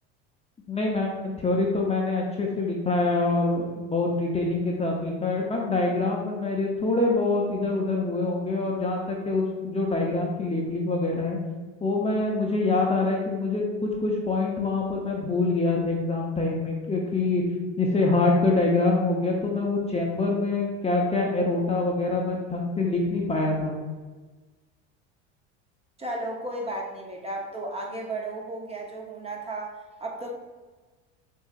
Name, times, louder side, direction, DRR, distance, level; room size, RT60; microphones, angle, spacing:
voice 1, 0.7-11.4 11.8-17.4 17.8-23.7, left 3 dB, 15° left, -2 dB, 0.7 m, -25 dB
voice 2, 26.0-30.3, right 2 dB, 15° right, 0 dB, 0.8 m, -34 dB
6.4 x 2.7 x 2.4 m, 1.3 s
hypercardioid pair, 90°, 36 cm